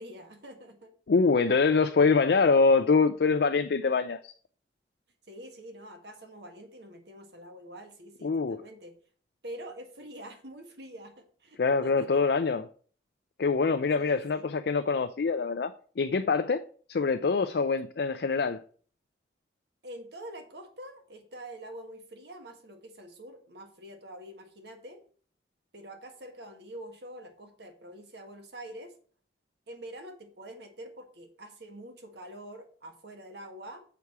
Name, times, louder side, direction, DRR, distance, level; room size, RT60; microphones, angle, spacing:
voice 1, 0.0-0.9 5.3-8.9 9.4-12.2 14.0-14.5 19.8-25.0 25.7-28.9 29.7-33.8, right 1 dB, 70° right, 1.4 m, -46 dB
voice 2, 1.1-4.3 8.2-8.6 11.6-12.6 13.4-15.7 16.0-16.6 16.9-18.6, left 4 dB, 60° left, 0.4 m, -24 dB
7.0 x 4.7 x 5.8 m
head